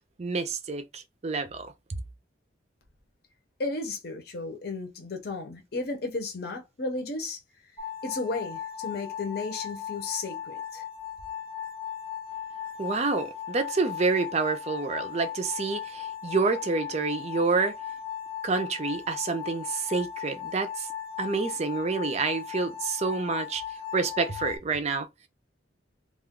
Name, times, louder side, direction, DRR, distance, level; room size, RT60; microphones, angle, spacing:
voice 1, 0.2-1.7 12.8-17.7 18.4-20.9 21.2-23.6 23.9-25.1, right 4 dB, 35° right, 0.4 m, -28 dB
voice 2, 3.6-7.4 8.0-10.8, left 3 dB, 55° left, 0.7 m, -34 dB
sound 1, 7.8-24.6, left 9 dB, 25° left, 0.8 m, -37 dB
2.3 x 2.2 x 3.6 m
head